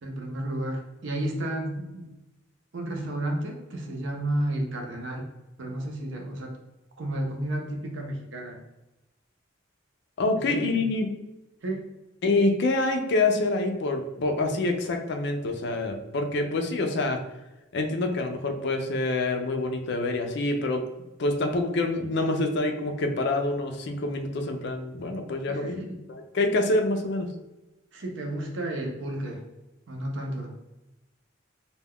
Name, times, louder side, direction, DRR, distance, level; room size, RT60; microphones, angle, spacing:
voice 1, 0.0-2.1 2.7-5.2 5.6-6.5 7.0-8.6 10.5-10.6 11.6-11.9 25.5-26.1 27.9-29.4 29.9-30.5, right 1 dB, 65° right, 1 dB, 0.6 m, -32 dB
voice 2, 10.2-11.1 12.2-17.2 17.7-20.8 21.2-25.8 26.1-27.3, left 2 dB, 60° left, 4 dB, 0.4 m, -26 dB
2.2 x 2.2 x 3.5 m, 1.0 s
head